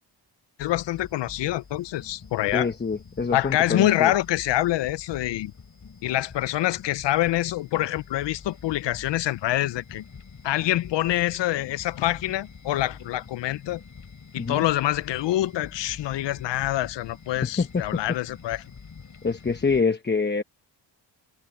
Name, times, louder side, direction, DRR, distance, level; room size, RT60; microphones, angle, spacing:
voice 1, 0.6-2.7 3.3-5.5 6.0-10.0 10.4-13.8 14.3-18.6, left 14 dB, 75° left, 0.6 m, -26 dB
sound 1, 0.6-19.8, left 5 dB, 45° left, 4.3 m, -46 dB
voice 2, 2.5-4.1 14.4-14.7 17.4-18.0 19.2-20.4, left 4 dB, 25° left, 1.0 m, -26 dB
cardioid pair, 95°, 44 cm